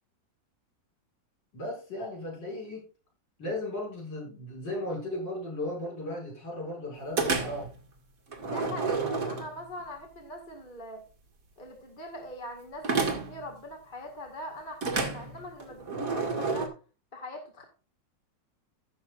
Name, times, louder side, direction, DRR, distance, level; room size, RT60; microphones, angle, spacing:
voice 1, 1.5-2.9 3.4-7.7, left 1 dB, 80° left, -3 dB, 7.2 m, -36 dB
sound 1, 7.2-7.7 8.3-9.8 12.8-13.5 14.8-16.7, right 4 dB, 50° right, 2.3 m, -30 dB
voice 2, 8.3-11.0 11.6-16.7 17.1-17.6, left 1 dB, 25° left, 2 dB, 2.1 m, -42 dB
15.0 x 6.9 x 2.5 m, 0.35 s
omnidirectional pair, 1.9 m